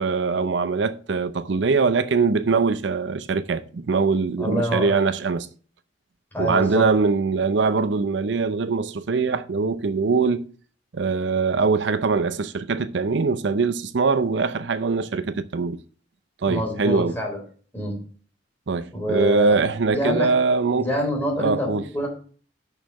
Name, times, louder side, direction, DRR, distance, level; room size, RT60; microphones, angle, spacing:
voice 1, 0.0-5.5 6.4-10.4 10.9-15.8 16.4-17.2 18.7-20.9 21.4-21.8, right 4 dB, 75° right, 0.6 m, -22 dB
voice 2, 4.4-5.0 6.3-6.8 16.5-17.4 17.7-18.0 18.9-19.6 19.9-20.3 20.8-22.1, equal, 10° left, 3.7 m, -26 dB
6.5 x 6.5 x 6.3 m
head